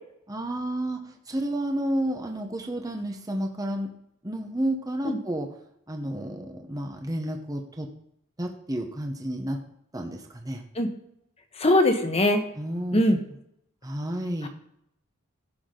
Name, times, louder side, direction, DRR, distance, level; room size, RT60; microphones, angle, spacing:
voice 1, 0.3-3.9 4.2-5.5 5.9-7.9 8.4-9.6 9.9-10.6 12.6-13.0 13.8-14.5, right 1 dB, 15° right, 3 dB, 1.0 m, -31 dB
voice 2, 11.6-12.4 12.9-13.2 14.4-14.5, left 1 dB, 30° left, 6 dB, 1.2 m, -21 dB
15.5 x 6.1 x 3.8 m, 0.74 s
head